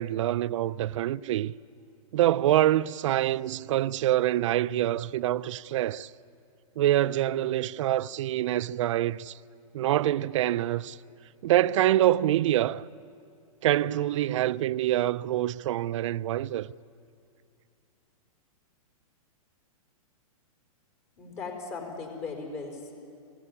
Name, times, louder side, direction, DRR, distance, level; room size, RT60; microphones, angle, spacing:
voice 1, 0.0-1.5 2.1-6.1 6.8-9.4 9.7-11.0 11.4-12.8 13.6-16.7, right 13 dB, 55° right, 0.5 m, -25 dB
voice 2, 21.2-22.9, left 4 dB, 35° left, 4.8 m, -38 dB
25.0 x 17.0 x 9.9 m
hypercardioid pair, 135°, 19 cm